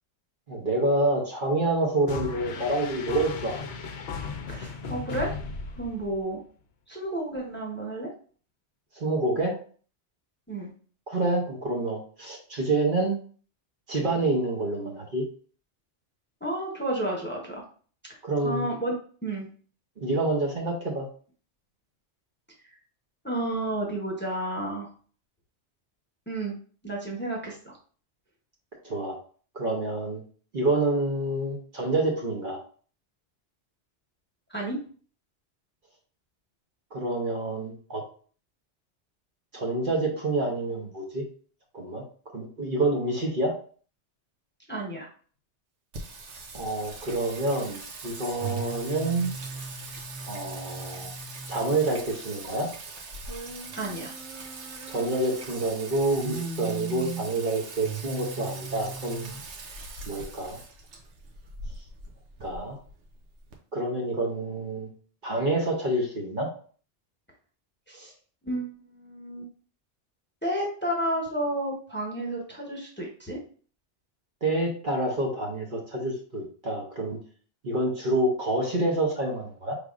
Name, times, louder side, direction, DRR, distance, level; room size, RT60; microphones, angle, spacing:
voice 1, 0.5-3.6 8.9-9.6 11.1-13.2 13.9-15.2 18.2-18.7 20.0-21.1 28.8-29.2 29.5-30.2 30.5-32.6 36.9-38.0 39.5-41.2 41.7-42.0 42.3-43.5 46.5-49.3 50.3-51.1 51.5-52.7 54.9-59.3 60.1-60.6 62.4-62.8 63.7-64.9 65.2-66.5 74.4-77.2 77.6-79.7, right 2 dB, 50° right, -1 dB, 1.0 m, -27 dB
sound 1, 2.1-6.4, left 4 dB, 70° left, 0.9 m, -36 dB
voice 2, 4.5-5.4 5.8-6.4 6.9-8.1 10.5-10.7 16.4-17.6 18.4-18.9 19.2-19.5 23.2-24.9 26.3-26.5 26.8-27.7 34.5-34.8 44.7-45.1 53.7-54.1 67.9-68.1 68.4-69.5 70.4-73.4, right 1 dB, 10° left, -2 dB, 0.9 m, -31 dB
Singing, 45.9-63.5, right 4 dB, 90° right, 1.1 m, -39 dB
4.8 x 3.4 x 2.4 m, 0.43 s
omnidirectional pair, 1.2 m